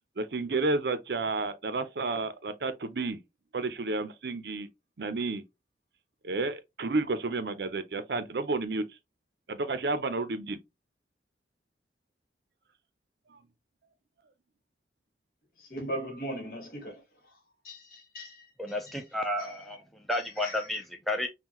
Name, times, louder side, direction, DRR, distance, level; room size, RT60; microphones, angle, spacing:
voice 1, 0.2-3.2 3.5-4.7 5.0-5.4 6.2-8.8 9.5-10.6, right 3 dB, 70° right, 0.6 m, -31 dB
voice 2, 15.6-17.0 17.3-17.4 17.6-19.0 19.4-19.7 20.1-20.7, right 1 dB, 55° left, 1.5 m, -40 dB
voice 3, 18.6-19.8 20.1-21.3, left 1 dB, ahead, 0.5 m, -31 dB
5.5 x 2.2 x 2.9 m
head